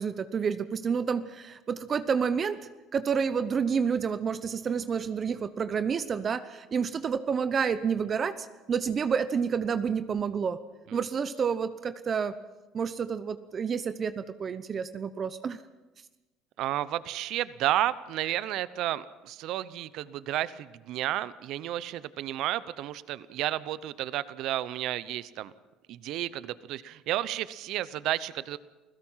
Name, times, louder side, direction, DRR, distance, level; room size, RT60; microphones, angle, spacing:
voice 1, 0.0-2.6 2.9-10.6 10.9-12.4 12.7-15.6, right 6 dB, 40° right, 12 dB, 0.9 m, -29 dB
voice 2, 16.6-25.5 25.9-28.6, right 13 dB, 65° right, 17 dB, 0.8 m, -32 dB
28.5 x 16.5 x 5.7 m, 1.1 s
supercardioid pair, 95°, 0 cm